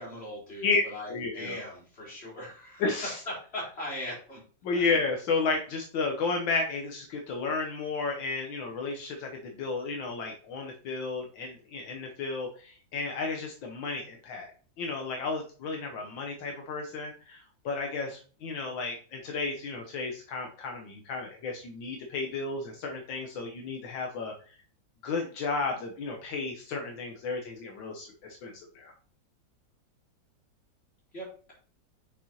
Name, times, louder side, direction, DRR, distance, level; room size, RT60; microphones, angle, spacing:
voice 1, 0.0-2.8 3.5-4.4 4.7-4.8 31.1-31.5, left 1 dB, 30° left, -4 dB, 3.3 m, -40 dB
voice 2, 1.1-1.6 2.8-3.2 4.6-14.5 14.8-24.5 25.0-28.9, left 4 dB, 80° left, 1 dB, 1.6 m, -32 dB
6.2 x 6.0 x 2.8 m, 0.41 s
omnidirectional pair, 2.1 m